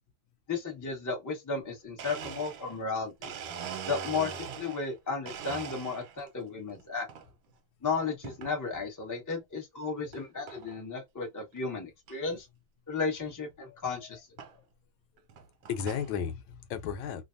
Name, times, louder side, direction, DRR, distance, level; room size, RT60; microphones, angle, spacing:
voice 1, 0.5-3.3 3.9-7.1 7.8-12.5 12.9-14.3, left 4 dB, 15° left, 0.7 m, -34 dB
Domestic sounds home sounds, 1.6-1.7 2.0-4.9 5.3-6.3 6.8-7.3 8.2-8.6 9.2-9.3 10.1-10.2 10.5-10.8 11.2-11.3 11.5-11.6 12.1-12.2 13.5-13.6 14.4-14.5 15.2-16.1, right 7 dB, 80° right, 1.5 m, -41 dB
voice 2, 13.6-14.6 15.7-17.2, left 7 dB, 85° left, 1.4 m, -36 dB
3.3 x 2.2 x 2.5 m
omnidirectional pair, 2.2 m